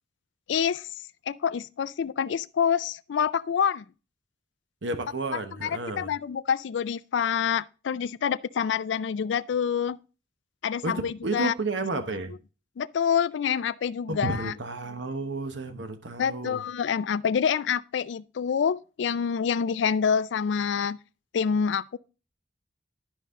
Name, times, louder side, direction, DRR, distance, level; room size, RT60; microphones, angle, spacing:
voice 1, 0.5-0.9 1.3-3.8 5.6-10.0 10.6-11.5 12.8-14.5 16.2-21.0 21.3-22.0, left 7 dB, 80° left, 0.4 m, -27 dB
voice 2, 4.8-6.1 10.8-12.3 14.1-16.6, right 2 dB, 85° right, 1.0 m, -32 dB
12.0 x 5.3 x 3.7 m
head